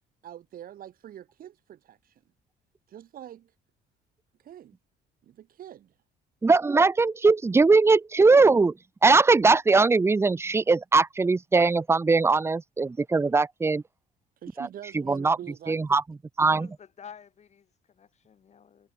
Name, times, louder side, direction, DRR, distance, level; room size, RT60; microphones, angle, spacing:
voice 1, 0.2-2.2 2.9-3.5 4.4-4.8 5.2-5.9 14.4-16.0, right 11 dB, 55° right, 2.9 m, -44 dB
voice 2, 6.4-8.7 9.0-13.8 14.6-14.7 15.1-15.4 15.7-16.0 16.4-16.7, right 3 dB, 15° right, 0.6 m, -20 dB
voice 3, 16.6-18.9, left 7 dB, 40° left, 6.5 m, -50 dB
cardioid pair, 110°, 17 cm